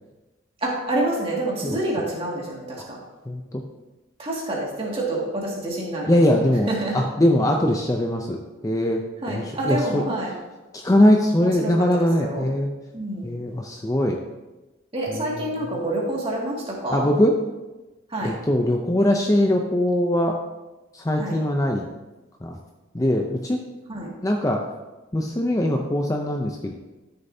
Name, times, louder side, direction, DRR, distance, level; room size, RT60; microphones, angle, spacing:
voice 1, 0.6-3.0 4.2-6.2 6.7-7.0 9.2-10.3 11.4-12.5 12.9-13.3 14.9-17.1 18.1-18.3 21.2-21.4 23.9-24.1, right 1 dB, 25° right, -3 dB, 2.1 m, -27 dB
voice 2, 3.3-3.6 6.1-8.4 8.6-9.0 9.3-10.0 10.7-12.7 13.2-14.2 15.1-15.5 16.9-17.4 18.2-20.4 20.9-21.9 22.4-22.6 22.9-23.6 24.2-24.6 25.1-26.7, left 1 dB, 15° left, 2 dB, 0.5 m, -21 dB
13.0 x 6.7 x 2.7 m, 1.1 s
head